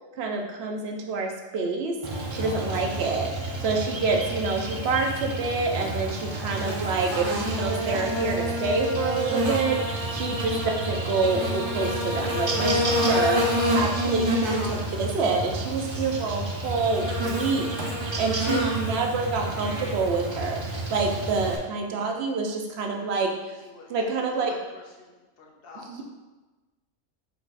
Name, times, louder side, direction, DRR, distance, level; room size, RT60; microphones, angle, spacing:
voice 1, 0.2-1.9 2.3-3.3 3.6-12.8 13.1-13.4 13.7-17.7 18.0-23.5 23.9-24.5 25.9-26.0, right 4 dB, 70° right, 2 dB, 0.8 m, -27 dB
Buzz, 2.0-21.6, equal, 40° right, 0.4 m, -28 dB
voice 2, 12.7-14.2 20.9-21.3 23.5-26.0, left 2 dB, 60° left, -1 dB, 0.9 m, -40 dB
4.5 x 2.3 x 4.0 m, 1.2 s
omnidirectional pair, 1.2 m